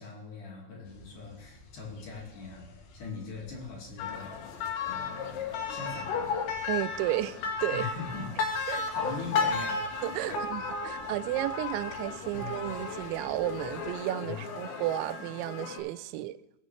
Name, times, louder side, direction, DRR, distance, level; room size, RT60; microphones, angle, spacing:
voice 1, 0.0-4.4 4.9-6.3 7.7-8.3 8.7-9.8 10.3-11.0 12.3-12.5 14.2-14.4, left 4 dB, 50° left, 3.7 m, -41 dB
sound 1, 0.8-13.9, left 6 dB, 85° left, 1.7 m, -41 dB
sound 2, 4.0-15.8, left 4 dB, 70° left, 3.4 m, -35 dB
voice 2, 6.7-7.9 8.7-8.8 10.0-16.3, right 15 dB, 85° right, 2.9 m, -33 dB
21.0 x 7.1 x 3.2 m
omnidirectional pair, 5.2 m